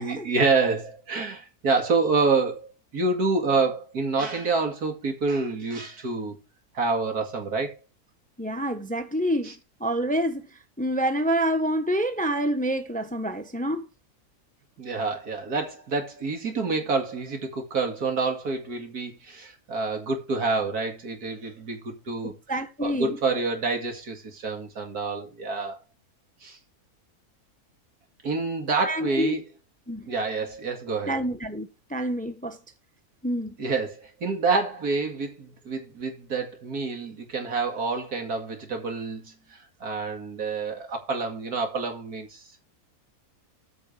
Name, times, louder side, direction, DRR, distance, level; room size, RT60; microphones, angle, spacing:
voice 1, 0.0-6.4 6.7-7.8 9.4-9.5 14.8-22.3 22.8-25.8 26.4-26.6 28.2-29.4 30.1-31.2 33.6-42.4, right 4 dB, 75° right, 2.6 m, -27 dB
voice 2, 8.4-9.5 9.8-10.5 10.8-13.9 22.2-23.2 28.8-29.4 29.9-30.1 31.1-32.6 33.2-33.6, equal, 5° left, 0.9 m, -27 dB
8.7 x 5.2 x 6.4 m
omnidirectional pair, 1.6 m